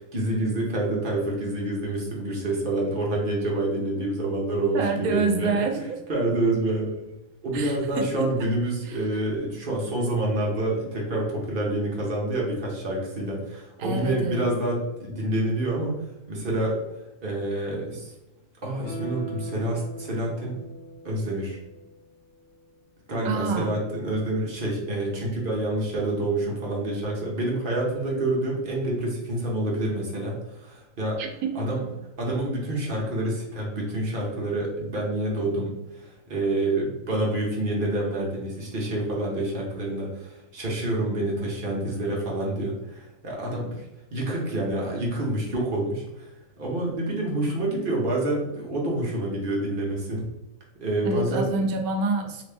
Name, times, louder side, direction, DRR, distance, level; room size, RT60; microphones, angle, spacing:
voice 1, 0.0-5.6 6.1-7.1 7.4-15.9 16.3-16.8 17.2-18.1 18.6-20.6 21.0-21.6 23.1-31.2 31.5-31.8 32.2-43.8 44.1-46.3 46.6-50.2 50.8-51.5, right 1 dB, 45° right, -3 dB, 1.0 m, -27 dB
voice 2, 4.7-6.0 7.5-8.3 8.8-9.0 13.8-14.5 23.2-23.7 31.2-31.6 51.0-52.4, right 3 dB, 90° right, 4 dB, 1.1 m, -27 dB
Guitar, 18.8-22.1 22.5-22.6, right 3 dB, 70° left, 1.1 m, -40 dB
3.0 x 2.9 x 3.4 m, 0.98 s
omnidirectional pair, 1.5 m